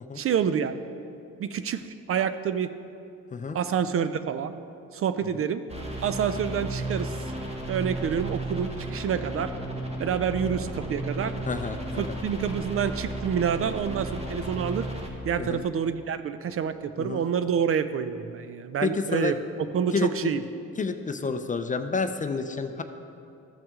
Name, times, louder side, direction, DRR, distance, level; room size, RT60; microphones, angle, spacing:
voice 1, 0.2-0.7 1.4-2.7 3.5-4.5 4.9-5.6 6.0-7.2 7.7-9.5 10.0-11.3 12.0-14.9 15.2-19.4 19.7-20.4, right 7 dB, 50° right, 11 dB, 0.4 m, -27 dB
sound 1, 5.7-15.1, right 1 dB, 20° right, 1.3 m, -34 dB
voice 2, 11.5-12.2 14.2-14.3 15.4-15.6 17.0-17.2 18.8-19.3 19.9-20.3 20.8-22.8, left 4 dB, 25° left, 8 dB, 0.5 m, -29 dB
13.5 x 5.9 x 3.6 m, 2.6 s
cardioid pair, 90°, 30 cm